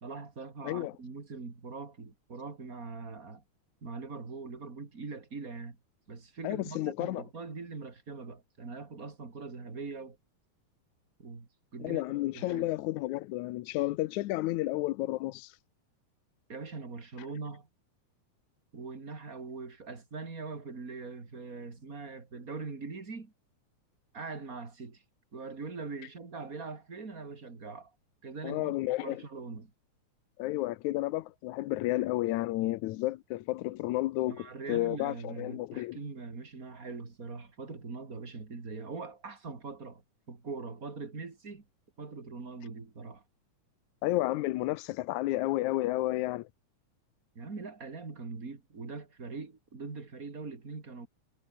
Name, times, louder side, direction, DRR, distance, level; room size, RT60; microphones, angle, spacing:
voice 1, 0.0-3.4 3.8-5.8 6.1-10.2 11.2-12.0 12.3-12.7 16.5-17.7 18.7-23.3 24.1-25.0 25.3-27.9 28.2-29.7 34.3-41.6 42.0-43.2 47.3-51.1, right 4 dB, 30° right, 3.4 m, -42 dB
voice 2, 0.6-0.9 6.4-7.2 11.8-15.5 28.4-29.2 30.4-36.0 44.0-46.5, left 17 dB, 80° left, 2.0 m, -31 dB
omnidirectional pair, 3.5 m